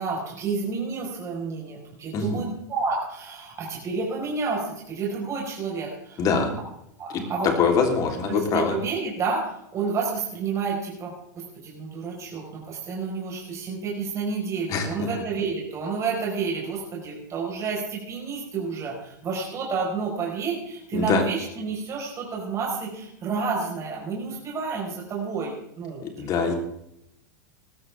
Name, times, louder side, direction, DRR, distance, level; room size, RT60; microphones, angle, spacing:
voice 1, 0.0-6.3 7.0-7.5 8.3-26.1 26.4-26.5, right 4 dB, 30° right, -3 dB, 4.8 m, -30 dB
voice 2, 6.2-6.5 7.6-8.8 14.7-15.1 20.9-21.2 26.0-26.5, left 5 dB, 40° left, 3 dB, 3.5 m, -24 dB
19.0 x 13.5 x 3.5 m, 0.79 s
hypercardioid pair, 100°, 10 cm